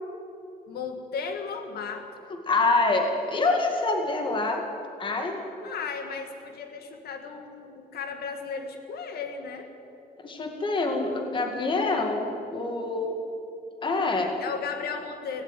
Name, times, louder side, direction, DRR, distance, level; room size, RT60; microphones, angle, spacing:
voice 1, 0.7-2.3 5.6-9.7 14.4-15.4, left 5 dB, 85° left, 6 dB, 1.9 m, -35 dB
voice 2, 2.5-4.6 5.0-5.7 10.2-13.2 13.8-14.3, left 3 dB, 30° left, 3 dB, 2.0 m, -26 dB
17.0 x 16.5 x 9.1 m, 2.7 s
wide cardioid pair, 175°, 16 cm